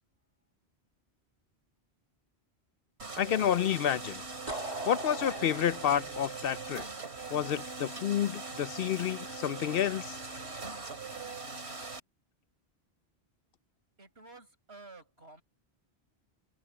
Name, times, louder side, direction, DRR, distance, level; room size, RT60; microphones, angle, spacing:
sound 1, 3.0-12.0, right 4 dB, 90° right, 3.0 m, -41 dB
voice 1, 3.2-4.2 4.9-6.8 7.3-10.2, left 10 dB, 65° left, 0.7 m, -29 dB
sound 2, 4.5-7.3, right 1 dB, 40° right, 3.2 m, -40 dB
voice 2, 14.0-15.4, right 3 dB, 75° right, 6.8 m, -52 dB
omnidirectional pair, 1.1 m